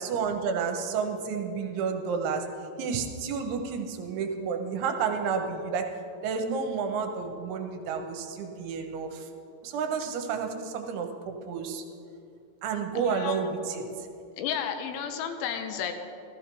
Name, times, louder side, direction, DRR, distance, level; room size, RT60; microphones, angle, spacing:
voice 1, 0.0-2.5 2.8-9.3 9.6-11.8 12.6-13.9, right 5 dB, 80° right, 4 dB, 3.0 m, -31 dB
voice 2, 13.1-13.4 14.4-15.9, left 8 dB, 85° left, 6 dB, 3.1 m, -32 dB
14.5 x 14.0 x 3.0 m, 2.6 s
omnidirectional pair, 5.6 m